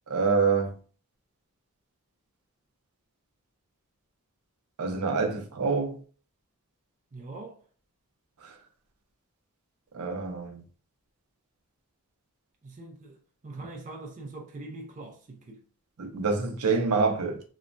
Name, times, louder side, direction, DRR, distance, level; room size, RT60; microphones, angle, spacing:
voice 1, 0.1-0.8 4.8-6.0 8.4-8.6 9.9-10.6 16.0-17.4, right 4 dB, 85° right, 0.6 m, -26 dB
voice 2, 7.1-7.6 12.6-13.2 13.4-15.6, right 2 dB, 35° right, 0.4 m, -42 dB
2.9 x 2.1 x 2.5 m
head